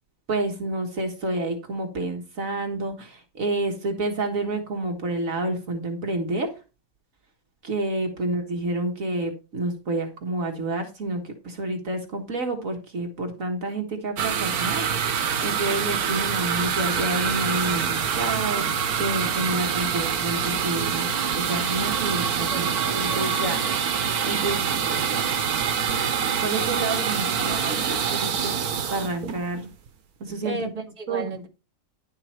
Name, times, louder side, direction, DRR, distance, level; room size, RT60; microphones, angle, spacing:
voice 1, 0.3-6.5 7.6-23.6 24.2-25.6 26.2-29.7 30.2-30.7 31.1-31.2, right 2 dB, 60° right, 4 dB, 1.9 m, -29 dB
sound 1, 14.2-29.9, right 7 dB, 75° right, 1.6 m, -25 dB
voice 2, 22.5-24.1 30.4-31.5, right 3 dB, 25° right, 0 dB, 2.0 m, -35 dB
11.0 x 5.9 x 4.4 m, 0.31 s
omnidirectional pair, 1.6 m